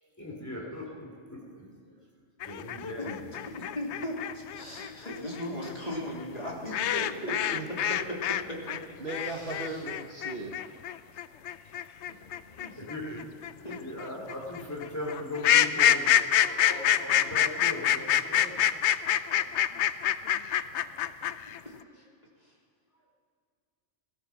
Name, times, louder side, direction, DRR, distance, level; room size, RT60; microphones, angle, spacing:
voice 1, 0.2-1.6 2.4-3.3 12.8-13.2 13.6-16.1 16.5-18.6, left 1 dB, 15° left, -2 dB, 3.3 m, -39 dB
sound 1, 2.4-8.4 8.7-21.6, left 10 dB, 70° left, 0.8 m, -26 dB
voice 2, 3.0-4.2 4.5-7.1 7.8-8.6 9.2-9.6 11.8-11.9 12.6-12.7 13.6-13.8, left 1 dB, 30° left, -3 dB, 2.9 m, -37 dB
voice 3, 7.2-7.7 8.7-10.6, right 2 dB, 50° right, 2 dB, 1.2 m, -37 dB
17.5 x 13.0 x 5.9 m, 2.3 s
omnidirectional pair, 1.3 m